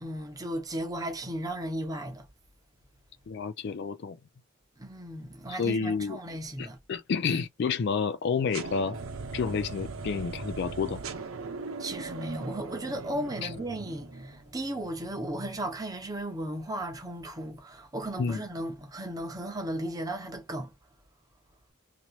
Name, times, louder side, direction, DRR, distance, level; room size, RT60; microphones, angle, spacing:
voice 1, 0.0-2.3 4.8-6.8 11.8-20.7, right 1 dB, 20° right, 0.7 m, -35 dB
voice 2, 3.3-4.2 5.6-6.2 6.6-9.0 9.3-11.0 13.4-13.5 18.2-18.4, left 5 dB, 55° left, 0.3 m, -30 dB
sound 1, 8.5-14.5, right 4 dB, 85° right, 0.7 m, -39 dB
2.9 x 2.7 x 3.0 m
head